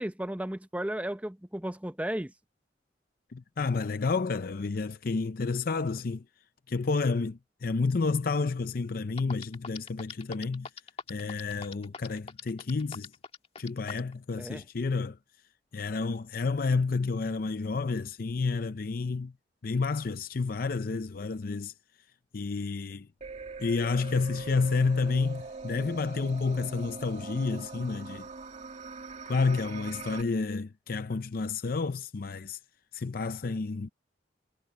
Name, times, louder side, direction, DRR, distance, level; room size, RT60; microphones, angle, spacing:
voice 1, 0.0-2.3 14.4-14.6, right 1 dB, 10° right, 0.8 m, -34 dB
voice 2, 3.3-6.2 6.7-10.7 11.1-13.1 13.6-15.2 15.7-19.3 19.6-21.7 22.3-23.1 23.6-28.3 29.3-32.6 32.9-33.9, left 4 dB, 55° left, 0.5 m, -30 dB
sound 1, 8.8-8.9 9.2-14.1, left 5 dB, 35° left, 1.7 m, -41 dB
sound 2, 23.2-30.2, right 4 dB, 40° right, 2.5 m, -42 dB
head